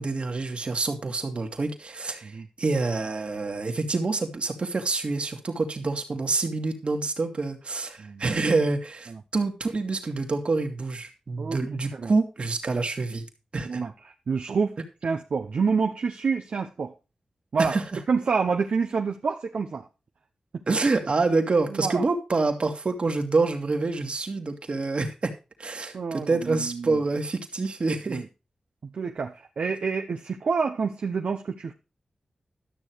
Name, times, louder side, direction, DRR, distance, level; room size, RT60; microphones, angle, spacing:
voice 1, 0.0-13.2 13.5-13.8 17.6-18.0 20.7-25.3 25.6-28.2, right 3 dB, 55° right, 5 dB, 2.1 m, -27 dB
voice 2, 14.3-14.8 15.0-16.9 17.5-17.7 18.1-19.9 21.7-22.0 25.9-27.0 28.1-28.3 28.8-31.7, right 5 dB, 75° right, 4 dB, 0.8 m, -27 dB
12.5 x 6.6 x 4.6 m, 0.30 s
cardioid pair, 50°, 2 cm